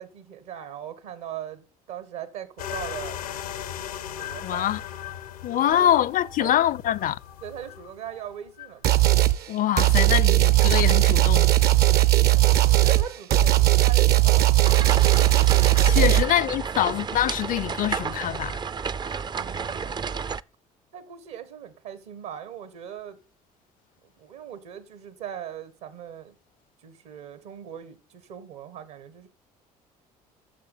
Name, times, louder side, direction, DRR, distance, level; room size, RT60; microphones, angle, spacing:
voice 1, 0.0-3.7 4.1-4.9 5.5-6.0 6.4-6.5 7.4-9.1 12.3-15.0 16.0-16.2 19.3-20.1 20.9-23.2 24.2-26.3 26.8-29.3, right 10 dB, 75° right, 1.6 m, -40 dB
sound 1, 2.6-8.8, left 10 dB, 85° left, 0.9 m, -38 dB
voice 2, 4.4-4.8 5.4-7.2 9.5-11.5 15.8-18.6, left 11 dB, 45° left, 0.5 m, -24 dB
sound 2, 8.8-9.4 9.8-16.2, right 15 dB, 60° right, 0.8 m, -18 dB
sound 3, 14.6-20.4, right 6 dB, 25° right, 0.4 m, -31 dB
8.6 x 6.6 x 8.5 m
hypercardioid pair, 60°, 19 cm